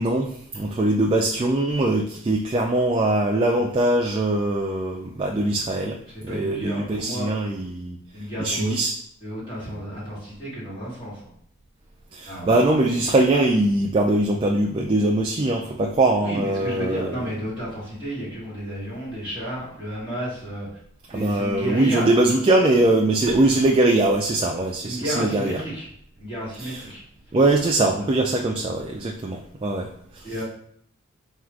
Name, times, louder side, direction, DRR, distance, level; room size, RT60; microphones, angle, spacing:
voice 1, 0.0-6.0 6.2-8.0 8.4-8.9 12.1-17.1 21.1-25.6 26.6-26.8 27.3-30.3, right 2 dB, 25° right, 0 dB, 0.3 m, -22 dB
voice 2, 6.1-7.3 8.1-8.8 9.2-11.3 12.2-12.5 16.2-20.7 21.1-22.1 23.2-23.4 24.8-25.9 26.1-27.0 30.2-30.4, equal, 25° left, -8 dB, 1.3 m, -32 dB
3.7 x 2.4 x 4.5 m, 0.65 s
head